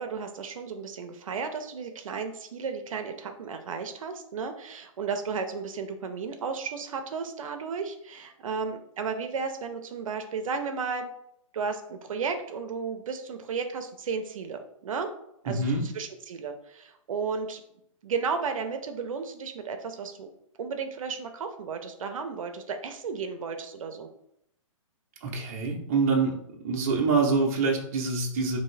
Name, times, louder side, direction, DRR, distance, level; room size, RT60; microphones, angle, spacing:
voice 1, 0.0-11.1 11.5-15.1 15.4-17.6 18.0-20.3 20.6-24.1, right 5 dB, 70° right, 6 dB, 0.5 m, -34 dB
voice 2, 15.5-15.8 25.2-26.3 26.6-28.6, right 4 dB, 30° right, -1 dB, 0.6 m, -25 dB
3.6 x 2.6 x 3.2 m, 0.76 s
hypercardioid pair, 170°, 18 cm